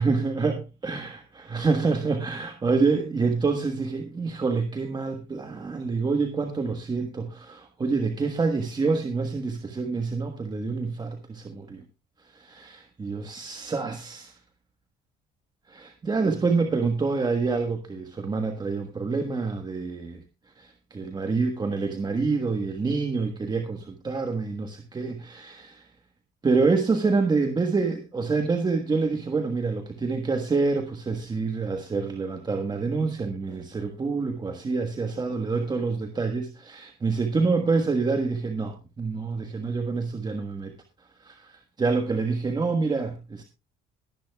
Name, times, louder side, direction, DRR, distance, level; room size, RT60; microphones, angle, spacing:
voice 1, 0.0-11.8 12.3-14.3 15.7-20.2 20.6-25.8 26.4-40.7 41.2-43.4, right 4 dB, 25° right, 5 dB, 1.4 m, -27 dB
21.0 x 10.5 x 2.3 m, 0.27 s
cardioid pair, 110°, 17 cm